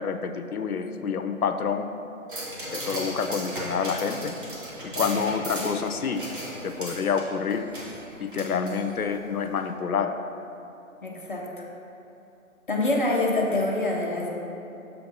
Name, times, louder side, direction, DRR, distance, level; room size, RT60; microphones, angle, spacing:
voice 1, 0.0-1.9 2.7-4.4 4.9-6.2 6.6-7.7 8.2-10.2, left 6 dB, 85° left, 8 dB, 0.6 m, -28 dB
sound 1, 2.3-9.2 9.6-9.7, right 1 dB, 35° right, 1.3 m, -36 dB
voice 2, 11.0-11.6 12.7-14.3, left 2 dB, 35° left, -2 dB, 0.7 m, -25 dB
6.9 x 3.4 x 5.3 m, 2.9 s
figure-of-eight pair, 155°, 43 cm